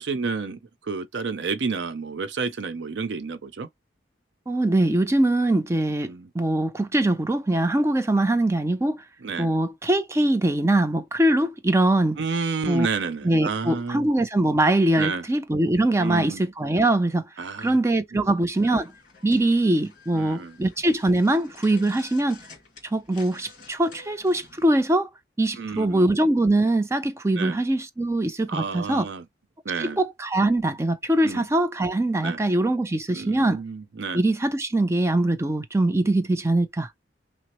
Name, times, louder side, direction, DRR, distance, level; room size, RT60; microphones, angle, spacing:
voice 1, 0.0-3.7 6.1-6.3 9.2-9.5 12.2-14.1 15.0-15.2 16.0-16.4 17.4-17.8 20.1-20.6 25.6-26.0 27.4-27.6 28.5-29.2 29.6-30.0 31.2-31.5 32.2-32.4 33.1-34.2, right 4 dB, 65° right, 0.5 m, -30 dB
voice 2, 4.5-9.0 9.4-12.2 12.7-12.9 13.2-17.3 17.6-18.9 19.2-22.4 22.8-25.1 25.4-29.1 29.8-33.6 34.1-36.9, right 1 dB, 15° right, 0.4 m, -22 dB
sound 1, 18.5-24.7, left 4 dB, 45° left, 2.2 m, -50 dB
5.9 x 2.0 x 2.9 m
head